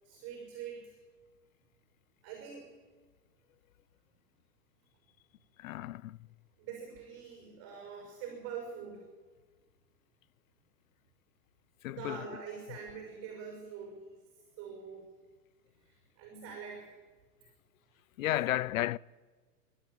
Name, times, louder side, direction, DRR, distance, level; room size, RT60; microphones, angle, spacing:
voice 1, 0.0-1.0 2.2-2.7 6.6-9.0 11.9-15.1 15.8-16.9, right 6 dB, 30° right, 6.1 m, -45 dB
voice 2, 5.6-6.2 11.8-12.3 18.2-19.0, left 14 dB, 60° left, 0.6 m, -33 dB
25.5 x 12.5 x 8.7 m
hypercardioid pair, 145°, 47 cm